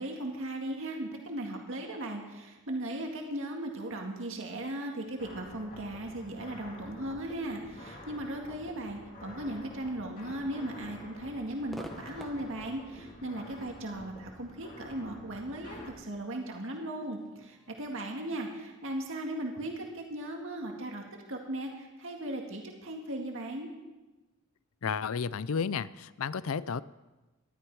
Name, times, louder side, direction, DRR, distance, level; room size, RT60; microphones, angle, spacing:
voice 1, 0.0-21.0 21.3-23.7, right 1 dB, 60° right, 1 dB, 2.0 m, -37 dB
sound 1, 5.2-15.9, left 1 dB, 40° left, 2.7 m, -49 dB
Crowd / Fireworks, 11.7-19.0, equal, ahead, 1.1 m, -53 dB
voice 2, 24.8-26.8, left 6 dB, 65° left, 18 dB, 0.5 m, -32 dB
19.5 x 12.5 x 4.8 m, 1.1 s
head